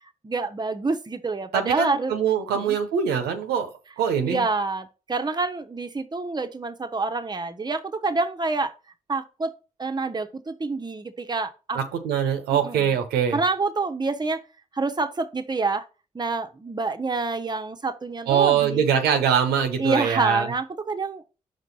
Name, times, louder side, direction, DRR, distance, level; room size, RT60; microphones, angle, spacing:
voice 1, 0.2-2.1 2.5-2.8 4.2-8.7 9.1-9.5 9.8-11.8 12.5-12.9 13.3-14.4 14.7-15.8 16.1-18.9 19.8-21.2, right 3 dB, 25° right, 0.8 m, -27 dB
voice 2, 1.5-3.7 4.0-4.5 11.7-13.4 18.3-20.5, right 8 dB, 85° right, 0.8 m, -23 dB
5.2 x 3.7 x 5.5 m
supercardioid pair, 40°, 16 cm